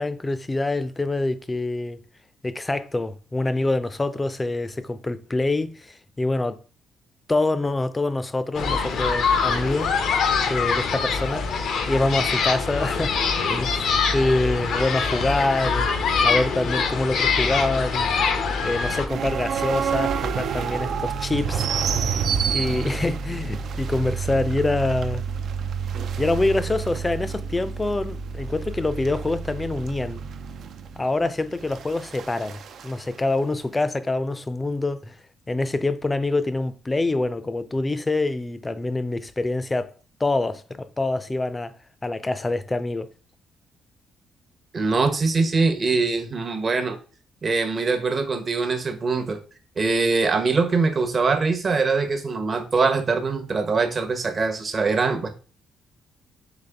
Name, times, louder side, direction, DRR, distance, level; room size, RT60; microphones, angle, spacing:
voice 1, 0.0-2.0 2.4-6.6 7.3-9.9 10.5-11.5 11.9-13.2 13.5-15.9 16.2-18.1 18.6-22.1 22.5-25.2 26.2-30.2 31.0-35.2 35.5-39.9 40.2-41.7 42.0-43.1, left 2 dB, 20° left, 0.5 m, -25 dB
sound 1, 8.5-19.1, left 5 dB, 70° left, 0.7 m, -24 dB
sound 2, 19.1-32.9, right 6 dB, 65° right, 0.5 m, -29 dB
voice 2, 44.7-47.0 47.4-49.4 49.8-55.3, right 4 dB, 45° right, 0.8 m, -23 dB
4.0 x 3.2 x 3.4 m
supercardioid pair, 65°, 0 cm